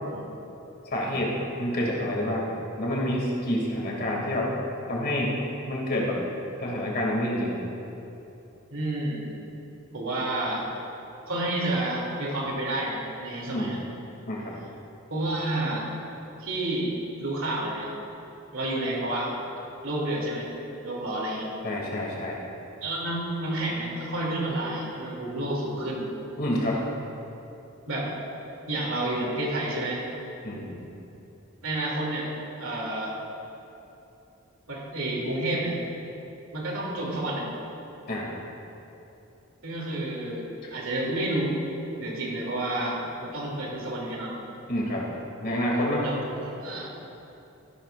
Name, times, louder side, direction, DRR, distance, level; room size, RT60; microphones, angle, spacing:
voice 1, 0.9-4.5 4.9-5.4 5.7-6.2 6.6-7.6 13.4-13.8 14.3-14.5 21.6-22.4 26.4-26.8 30.4-30.9 38.1-38.3 44.7-45.1 45.4-46.1, left 1 dB, 50° left, -3 dB, 2.5 m, -28 dB
voice 2, 8.7-9.4 9.9-10.6 11.3-13.8 15.1-15.8 16.4-17.9 18.5-19.3 19.8-20.5 20.8-21.5 22.8-26.1 27.9-28.1 28.7-30.0 31.6-32.3 32.6-33.2 34.7-35.8 36.5-37.5 39.6-40.4 40.7-41.6 42.0-44.3 46.0-46.9, right 1 dB, 70° right, -3 dB, 2.8 m, -30 dB
15.0 x 12.5 x 2.5 m, 2.9 s
head